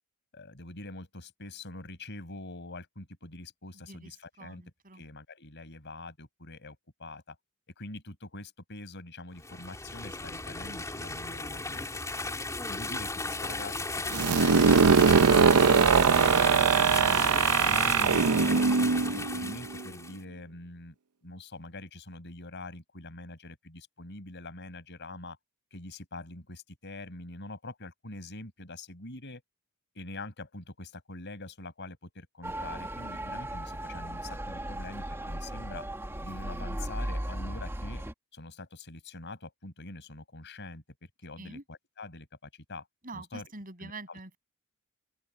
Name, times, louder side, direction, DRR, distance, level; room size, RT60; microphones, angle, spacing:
voice 1, 0.3-4.6 4.9-7.4 7.8-11.9 12.6-17.3 17.6-21.0 21.2-25.4 25.7-29.4 29.9-35.9 36.2-38.0 38.3-42.9 43.1-43.5 43.8-44.4, left 2 dB, 50° left, 5.4 m, -44 dB
voice 2, 3.7-4.1 4.4-5.0 41.4-41.6 43.0-44.3, right 2 dB, 40° right, 6.8 m, -45 dB
sound 1, 9.4-20.2, left 3 dB, 15° left, 3.7 m, -35 dB
sound 2, 14.1-19.8, right 5 dB, 80° right, 0.6 m, -22 dB
Motor vehicle (road) / Siren, 32.4-38.1, right 1 dB, 10° right, 1.8 m, -36 dB
open air
head